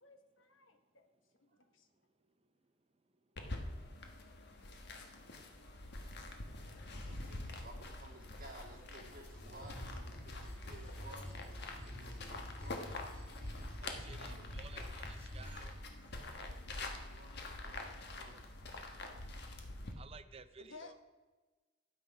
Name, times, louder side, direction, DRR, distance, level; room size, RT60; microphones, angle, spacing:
voice 1, 0.0-1.1 1.5-1.9 20.6-21.0, left 3 dB, 80° left, 7 dB, 1.1 m, -56 dB
sound 1, 3.4-19.9, left 2 dB, 60° left, 1.4 m, -46 dB
voice 2, 7.1-9.8 10.2-11.3 11.8-12.8 13.3-14.4 14.7-14.9 16.2-17.9 18.1-18.4, right 1 dB, 50° right, -1 dB, 2.6 m, -57 dB
sound 2, 9.3-15.9, equal, 5° left, 4.0 m, -49 dB
voice 3, 13.8-15.8 20.0-20.9, right 5 dB, 30° right, 11 dB, 0.6 m, -55 dB
12.5 x 8.5 x 5.3 m, 1.3 s
head